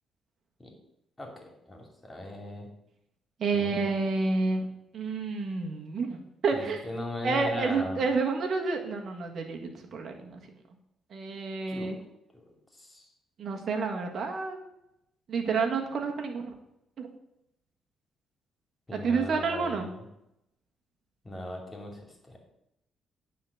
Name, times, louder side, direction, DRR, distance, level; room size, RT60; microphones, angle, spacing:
voice 1, 1.7-2.7 3.5-3.9 6.5-8.0 11.7-12.0 12.3-13.1 18.9-20.0 21.2-22.4, left 1 dB, 15° left, 1 dB, 2.6 m, -38 dB
voice 2, 3.4-4.7 4.9-6.8 7.2-9.6 9.9-10.4 11.1-12.0 13.4-14.6 15.3-16.5 17.0-17.1 18.9-19.9, right 4 dB, 60° right, 2 dB, 1.6 m, -29 dB
9.5 x 3.9 x 7.1 m, 0.83 s
cardioid pair, 90°, 0 cm